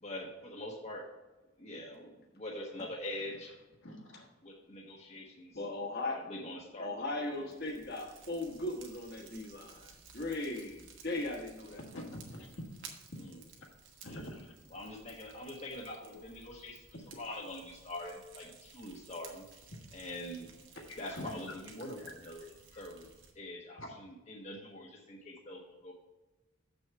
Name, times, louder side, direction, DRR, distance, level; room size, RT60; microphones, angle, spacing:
voice 1, 0.0-1.0 1.6-3.5 4.4-5.5 6.0-6.9 7.3-7.5 13.2-13.3 14.7-16.8 17.2-19.4 19.9-20.5 21.0-22.4 22.8-23.1 23.4-25.9, left 1 dB, 35° left, -1 dB, 1.0 m, -44 dB
voice 2, 3.8-4.3 11.8-12.6 13.1-13.2 14.0-14.5 17.1-17.2 20.9-21.9 22.7-22.8 23.8-23.9, left 1 dB, 70° left, 0 dB, 1.6 m, -46 dB
voice 3, 5.5-6.2 6.8-11.8 16.0-16.2, left 2 dB, 50° left, 0 dB, 1.2 m, -38 dB
Fire, 7.1-23.3, right 5 dB, 65° right, 1.4 m, -56 dB
7.1 x 6.2 x 4.6 m, 1.1 s
head